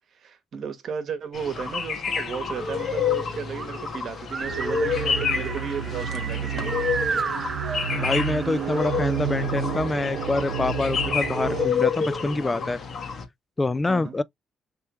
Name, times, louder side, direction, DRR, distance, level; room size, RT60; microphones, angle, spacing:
voice 1, 0.1-6.7 7.6-7.9 13.9-14.2, right 6 dB, 65° right, 1.0 m, -34 dB
sound 1, 1.3-13.3, left 6 dB, 55° left, 1.1 m, -29 dB
sound 2, 2.0-9.6, right 5 dB, 40° right, 0.5 m, -34 dB
sound 3, 4.4-11.7, right 8 dB, 85° right, 0.6 m, -31 dB
voice 2, 7.9-12.8 13.6-14.2, left 2 dB, 20° left, 0.3 m, -26 dB
3.3 x 3.3 x 3.0 m
cardioid pair, 90°, 0 cm